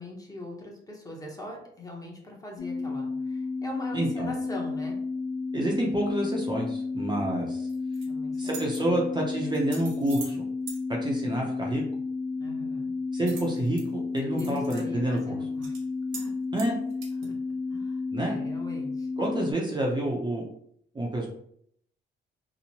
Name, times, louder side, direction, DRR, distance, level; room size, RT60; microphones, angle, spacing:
voice 1, 0.0-5.0 8.0-9.0 12.4-12.9 14.3-15.8 16.1-16.6 17.2-17.4 17.7-19.1, left 1 dB, 20° left, -1 dB, 0.8 m, -41 dB
sound 1, 2.6-19.5, left 4 dB, 70° left, 0.8 m, -32 dB
voice 2, 3.9-4.3 5.5-7.7 8.4-10.4 10.9-11.8 13.1-15.3 16.5-16.7 18.1-18.4 19.2-20.4 20.9-21.3, right 1 dB, 20° right, -2 dB, 0.5 m, -28 dB
sound 2, 7.7-8.1 8.4-8.8 9.5-10.4 10.7-10.8 13.3-13.8 14.2-14.8 15.2-15.3 15.6-15.8 16.1-16.3 16.6-17.3, right 4 dB, 80° right, 0.8 m, -42 dB
2.9 x 2.1 x 2.8 m, 0.68 s
cardioid pair, 90°, 20 cm